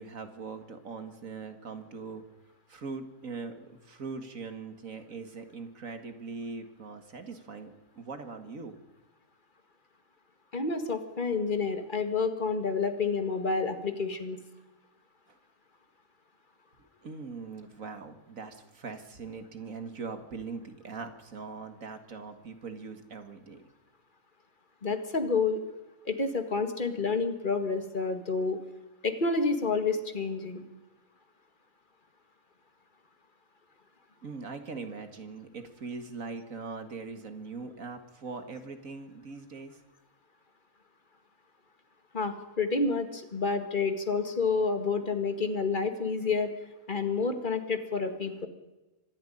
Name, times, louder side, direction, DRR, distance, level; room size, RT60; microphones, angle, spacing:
voice 1, 0.0-2.2 2.7-8.8 15.3-15.4 16.8-23.6 34.2-39.8, right 4 dB, 70° right, 8 dB, 2.2 m, -41 dB
voice 2, 10.5-14.4 24.8-25.6 26.1-28.6 29.0-30.6 42.1-46.5 46.9-48.5, left 4 dB, 35° left, 7 dB, 2.0 m, -29 dB
25.0 x 11.0 x 10.0 m, 1.1 s
omnidirectional pair, 1.5 m